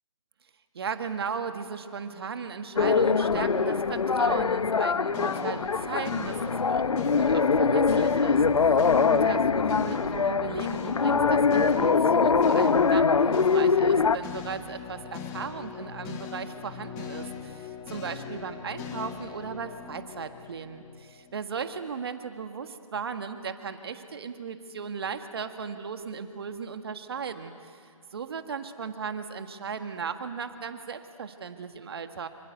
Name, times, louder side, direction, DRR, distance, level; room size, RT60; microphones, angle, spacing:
voice 1, 0.7-27.9 28.1-32.3, right 6 dB, 45° right, 8 dB, 1.6 m, -36 dB
sound 1, 2.8-14.2, left 5 dB, 70° left, 0.8 m, -23 dB
sound 2, 5.1-21.4, left 7 dB, 15° left, 1.6 m, -39 dB
27.0 x 25.5 x 8.2 m, 2.3 s
figure-of-eight pair, 150°, 18 cm